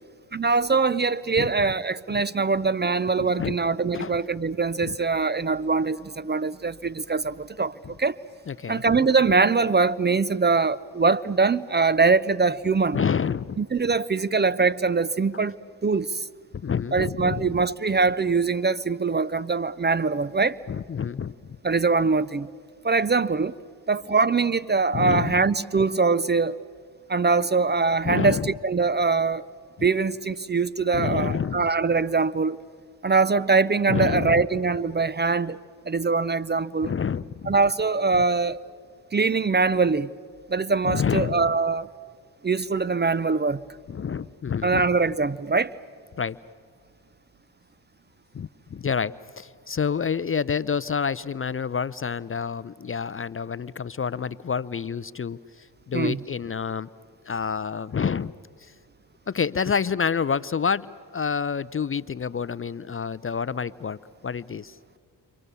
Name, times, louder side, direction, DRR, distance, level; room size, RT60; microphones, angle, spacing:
voice 1, 0.3-8.2 8.7-13.0 13.6-15.6 15.8-16.2 16.9-20.6 21.6-22.5 22.8-23.5 23.9-26.6 27.1-28.4 28.6-29.4 29.8-32.6 33.0-35.6 35.9-36.9 37.5-38.6 39.1-40.1 40.5-41.9 42.4-43.6 44.6-45.7 55.9-56.2, right 4 dB, 20° right, 0.6 m, -23 dB
voice 2, 3.2-3.5 3.9-4.2 4.8-5.0 8.5-9.0 12.9-13.6 16.6-17.6 20.7-21.3 24.9-25.4 28.0-28.5 30.9-31.7 33.9-34.5 36.8-37.6 38.1-38.2 40.8-41.5 43.9-44.9 46.2-46.4 48.3-56.9 57.3-58.3 58.6-58.7 59.3-64.8, left 6 dB, 30° left, 0.6 m, -28 dB
29.0 x 26.0 x 6.9 m
supercardioid pair, 55°, 46 cm